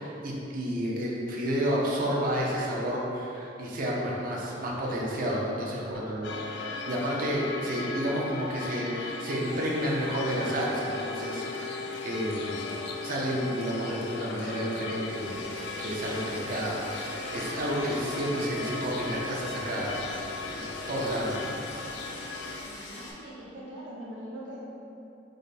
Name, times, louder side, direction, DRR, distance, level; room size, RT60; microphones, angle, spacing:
voice 1, 0.0-12.7 13.0-15.4 15.8-21.5, equal, 50° right, -4 dB, 0.7 m, -31 dB
sound 1, 6.2-22.6, left 3 dB, 65° left, 0.3 m, -38 dB
sound 2, 9.5-16.9, left 3 dB, ahead, 0.6 m, -41 dB
Liquid, 15.0-23.1, left 1 dB, 80° left, 0.7 m, -43 dB
voice 2, 22.6-24.7, equal, 85° right, -8 dB, 1.1 m, -42 dB
5.0 x 2.2 x 4.1 m, 2.7 s
head